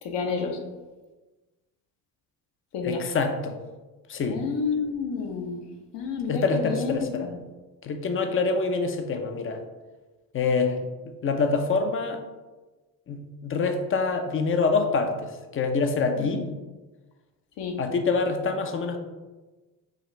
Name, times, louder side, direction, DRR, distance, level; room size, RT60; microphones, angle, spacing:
voice 1, 0.0-0.6 2.7-3.0 4.3-7.4 16.2-16.4 17.6-17.8, left 5 dB, 60° left, 3 dB, 0.9 m, -30 dB
voice 2, 2.8-3.6 4.1-4.4 6.3-7.3 7.8-9.6 10.3-10.8 11.0-12.2 13.1-16.5 17.8-19.0, left 4 dB, 25° left, 6 dB, 0.5 m, -26 dB
5.0 x 2.5 x 3.2 m, 1.2 s
hypercardioid pair, 65°, 48 cm